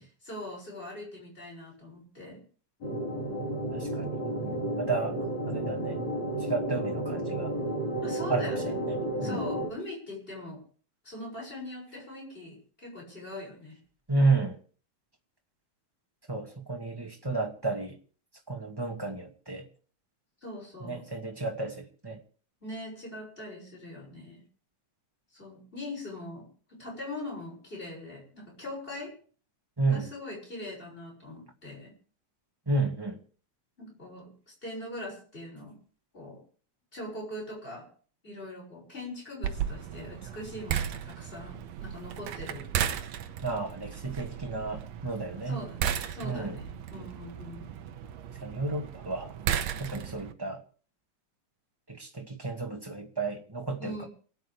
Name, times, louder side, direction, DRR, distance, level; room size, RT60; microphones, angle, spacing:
voice 1, 0.0-2.4 8.0-8.7 9.2-10.6 11.0-13.8 20.4-21.1 22.6-24.4 25.3-29.2 29.9-32.0 33.8-35.8 36.1-36.4 36.9-37.9 38.2-43.0 45.5-47.7 53.8-54.1, left 1 dB, 15° left, -1 dB, 6.9 m, -41 dB
sound 1, 2.8-9.7, right 1 dB, 65° left, 5.7 m, -32 dB
voice 2, 3.7-6.0 6.4-7.5 8.3-9.4 14.1-14.6 16.3-18.0 18.5-19.7 20.8-22.2 29.8-30.1 32.7-33.2 43.4-45.6 46.2-46.6 48.4-49.3 49.8-50.6 51.9-54.0, right 3 dB, 10° right, 1 dB, 1.7 m, -32 dB
sound 2, 39.4-50.3, right 9 dB, 70° right, 2.0 m, -35 dB
28.0 x 9.4 x 3.5 m, 0.42 s
omnidirectional pair, 3.5 m